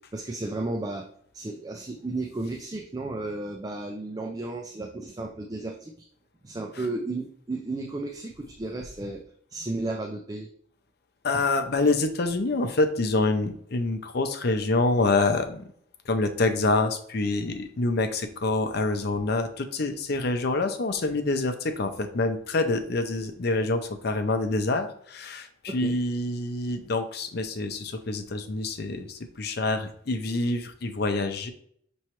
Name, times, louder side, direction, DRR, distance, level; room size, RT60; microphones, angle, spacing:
voice 1, 0.1-1.1 1.3-6.1 6.4-10.5 11.3-11.4 25.7-26.0, right 2 dB, 20° right, 1 dB, 0.4 m, -33 dB
voice 2, 11.2-15.7 16.1-31.5, left 2 dB, 60° left, 7 dB, 0.6 m, -26 dB
5.7 x 3.1 x 2.9 m, 0.63 s
head